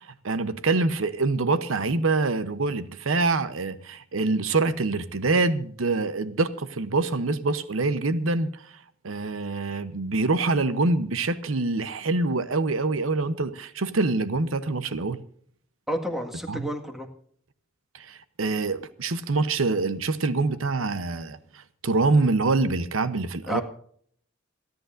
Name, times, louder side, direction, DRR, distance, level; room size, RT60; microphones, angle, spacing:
voice 1, 0.0-8.7 9.0-15.2 16.5-16.7 17.9-23.6, right 3 dB, 90° right, 0.8 m, -25 dB
voice 2, 15.9-17.1 23.5-23.6, equal, ahead, 1.7 m, -30 dB
27.5 x 10.5 x 2.6 m
head